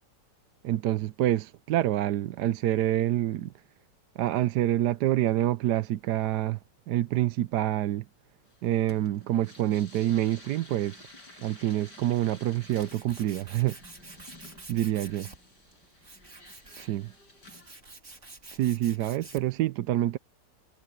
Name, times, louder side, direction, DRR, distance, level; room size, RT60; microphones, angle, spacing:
voice 1, 0.6-3.5 4.2-6.6 6.9-8.0 8.6-11.0 11.4-13.8 14.7-15.3 16.8-17.1 18.5-20.2, right 13 dB, 70° right, 1.2 m, -27 dB
sound 1, 8.5-17.7, left 2 dB, 70° left, 6.5 m, -52 dB
Tools, 12.2-19.6, right 3 dB, 40° right, 3.5 m, -49 dB
omnidirectional pair, 1.9 m